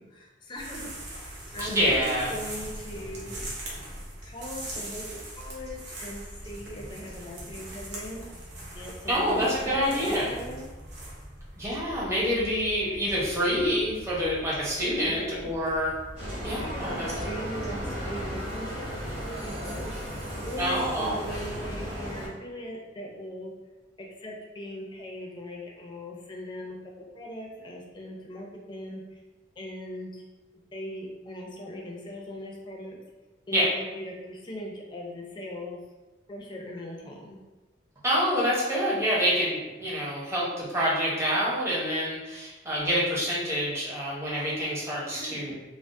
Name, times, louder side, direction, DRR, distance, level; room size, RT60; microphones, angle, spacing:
voice 1, 0.0-3.4 4.2-8.3 8.7-10.8 15.0-15.5 16.6-20.2 20.4-23.5 24.0-29.0 29.6-30.2 30.7-33.0 33.5-35.8 36.3-37.4 45.1-45.6, equal, 25° left, -1 dB, 0.5 m, -40 dB
sound 1, 0.5-18.3, right 1 dB, 65° right, 0.7 m, -42 dB
voice 2, 1.6-2.3 9.1-10.3 11.6-15.9 16.4-17.1 20.6-21.2 33.5-33.7 38.0-45.5, equal, 15° right, -7 dB, 0.8 m, -27 dB
Bicycle, 16.2-22.3, equal, 35° right, 1.3 m, -35 dB
3.4 x 2.0 x 2.5 m, 1.1 s
head